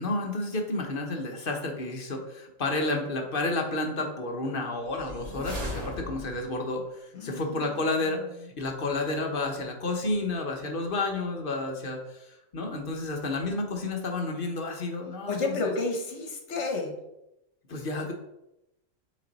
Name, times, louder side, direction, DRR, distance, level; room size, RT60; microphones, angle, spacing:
voice 1, 0.0-15.7 17.7-18.1, left 2 dB, 50° left, 3 dB, 1.0 m, -31 dB
sound 1, 4.8-6.6, left 1 dB, 60° right, 2.0 m, -37 dB
voice 2, 7.1-7.8 15.3-16.9, left 3 dB, 65° left, 3 dB, 1.4 m, -31 dB
6.4 x 4.2 x 4.0 m, 0.89 s
omnidirectional pair, 1.3 m